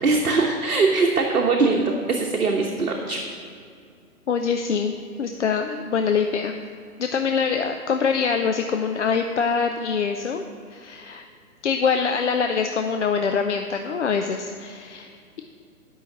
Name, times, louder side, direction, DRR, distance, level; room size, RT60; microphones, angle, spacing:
voice 1, 0.0-3.2, right 3 dB, 65° right, 0 dB, 1.1 m, -21 dB
voice 2, 4.3-4.9 5.2-6.5 7.0-10.4 10.7-11.3 11.6-15.4, left 6 dB, 50° left, 5 dB, 0.6 m, -24 dB
9.6 x 5.7 x 7.2 m, 2.4 s
figure-of-eight pair, 125°, 45 cm